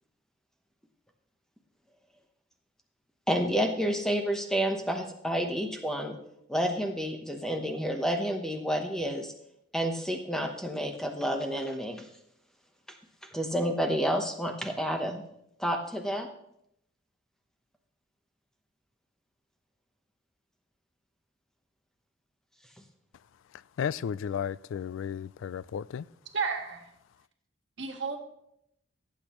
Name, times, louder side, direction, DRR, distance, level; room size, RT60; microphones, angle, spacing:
voice 1, 3.3-6.2 6.5-9.3 9.7-12.1 13.3-15.2 15.6-16.3, equal, 5° left, 0.9 m, -29 dB
voice 2, 23.5-26.1, left 8 dB, 75° left, 0.3 m, -34 dB
voice 3, 26.3-26.9 27.8-28.2, right 5 dB, 65° right, 1.6 m, -32 dB
17.5 x 8.4 x 3.0 m
head